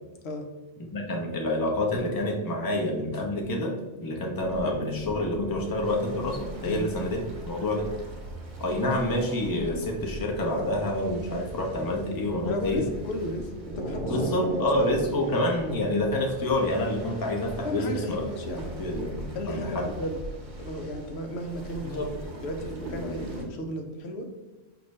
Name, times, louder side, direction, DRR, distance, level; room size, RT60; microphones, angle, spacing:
voice 1, 0.9-7.9 8.6-12.8 14.1-18.3 18.8-19.9 21.8-22.1, left 1 dB, 25° left, 1 dB, 0.6 m, -28 dB
sound 1, 4.4-23.4, right 1 dB, 50° right, 0.9 m, -39 dB
voice 2, 12.4-14.5 14.8-15.4 17.6-18.8 19.3-20.2 20.6-22.0 22.4-24.3, left 1 dB, 80° left, 4 dB, 0.9 m, -34 dB
5.1 x 2.6 x 3.2 m, 1.1 s
omnidirectional pair, 1.1 m